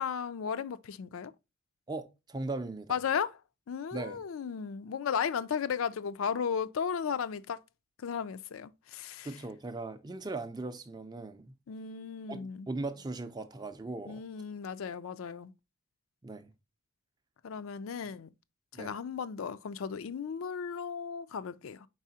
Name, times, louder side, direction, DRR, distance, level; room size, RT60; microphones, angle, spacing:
voice 1, 0.0-1.3 2.9-3.4 3.7-7.6 8.0-9.3 11.7-12.7 14.1-15.5 17.4-18.3 18.8-21.9, left 7 dB, 75° left, 0.4 m, -35 dB
voice 2, 1.9-3.0 3.9-4.2 9.2-11.5 12.3-12.4 12.7-14.2 16.2-16.5 18.7-18.9, right 2 dB, 20° right, 0.4 m, -38 dB
4.7 x 4.0 x 2.7 m
head